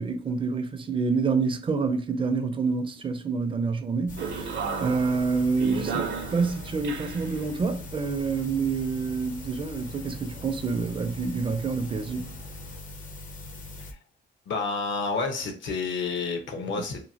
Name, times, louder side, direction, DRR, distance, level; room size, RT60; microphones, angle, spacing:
voice 1, 0.0-4.5 4.8-12.4, right 4 dB, 25° right, 0.4 m, -27 dB
sound 1, 4.1-13.9, left 2 dB, 40° left, 0.6 m, -41 dB
sound 2, 4.2-12.8, right 5 dB, 65° right, 0.6 m, -37 dB
voice 2, 14.5-17.0, left 4 dB, 70° left, 0.8 m, -29 dB
2.9 x 2.3 x 2.7 m
cardioid pair, 90°, 20 cm